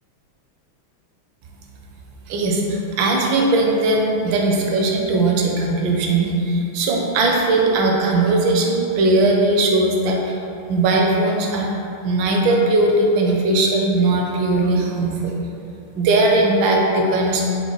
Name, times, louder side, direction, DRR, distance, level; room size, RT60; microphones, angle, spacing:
voice 1, 2.3-10.4 10.7-11.7 12.0-15.3 16.0-17.4, right 2 dB, 75° right, 0 dB, 1.2 m, -19 dB
5.2 x 2.2 x 4.5 m, 2.7 s
omnidirectional pair, 2.4 m